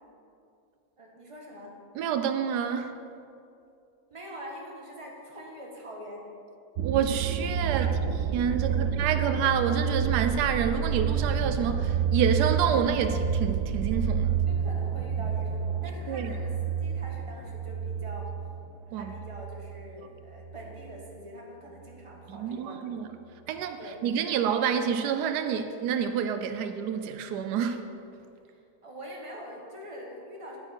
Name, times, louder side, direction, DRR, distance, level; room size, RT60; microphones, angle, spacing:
voice 1, 1.0-1.7 4.1-6.3 7.6-8.0 14.5-18.3 18.9-23.0 23.8-24.0 28.4-30.6, equal, 20° right, -2 dB, 1.5 m, -44 dB
voice 2, 1.9-3.0 6.8-7.9 8.3-14.4 16.1-16.3 18.9-19.1 22.3-23.1 23.5-27.8, right 7 dB, 90° right, 8 dB, 1.2 m, -28 dB
sound 1, 6.8-19.8 20.1-20.7, right 7 dB, 65° right, 1.0 m, -29 dB
9.5 x 9.4 x 4.5 m, 2.6 s
omnidirectional pair, 1.7 m